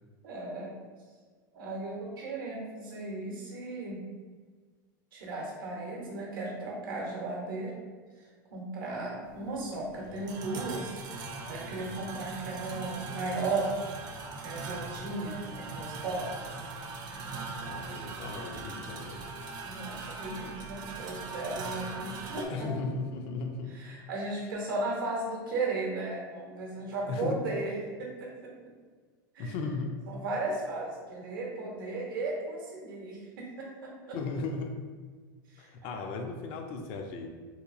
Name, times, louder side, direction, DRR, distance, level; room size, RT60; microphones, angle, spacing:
voice 1, 0.2-0.7 1.5-4.0 5.1-7.7 8.2-11.0 11.5-13.7 14.4-16.7 19.6-22.7 23.7-27.7 28.0-28.5 29.3-29.5 30.1-34.2 35.5-36.0, right 2 dB, 80° right, -3 dB, 0.7 m, -36 dB
sound 1, 9.3-22.5, right 3 dB, 40° right, 0.4 m, -40 dB
voice 2, 17.6-19.2 22.4-23.8 26.8-27.4 29.4-30.1 34.1-34.8 35.6-37.3, left 3 dB, 50° left, 4 dB, 0.3 m, -36 dB
2.9 x 2.3 x 2.4 m, 1.5 s
hypercardioid pair, 110°, 11 cm